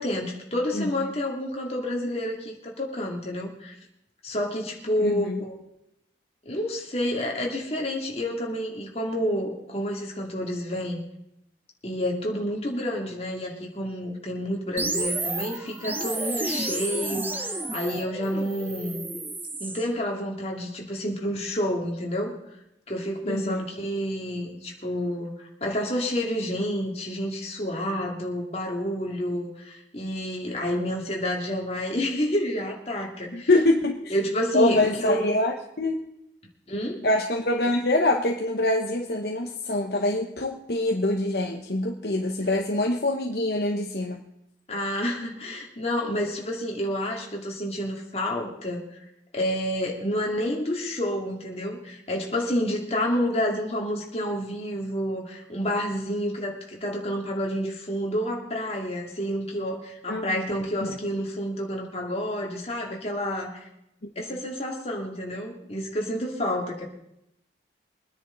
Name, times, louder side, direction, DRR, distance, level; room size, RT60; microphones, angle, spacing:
voice 1, 0.0-3.7 4.2-5.5 6.4-11.0 11.8-19.0 19.6-22.3 22.9-25.3 25.6-33.5 34.1-35.3 36.7-37.1 44.7-48.8 49.3-63.7 64.2-66.8, equal, 35° left, 0 dB, 2.5 m, -29 dB
voice 2, 5.0-5.4 23.3-23.7 33.3-34.1 34.5-36.0 37.0-44.2 60.1-60.4 60.8-61.0, left 2 dB, 60° left, 2 dB, 1.0 m, -25 dB
sound 1, 14.8-19.9, right 2 dB, 10° right, 0.7 m, -31 dB
23.5 x 9.9 x 4.0 m, 0.83 s
head